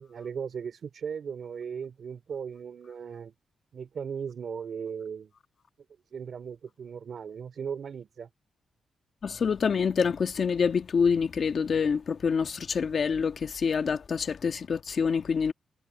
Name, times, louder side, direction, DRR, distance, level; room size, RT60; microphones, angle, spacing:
voice 1, 0.0-3.3 3.7-5.3 6.1-8.3, right 7 dB, 60° right, 3.7 m, -37 dB
voice 2, 9.2-15.5, left 6 dB, 50° left, 1.4 m, -26 dB
cardioid pair, 115°, 0 cm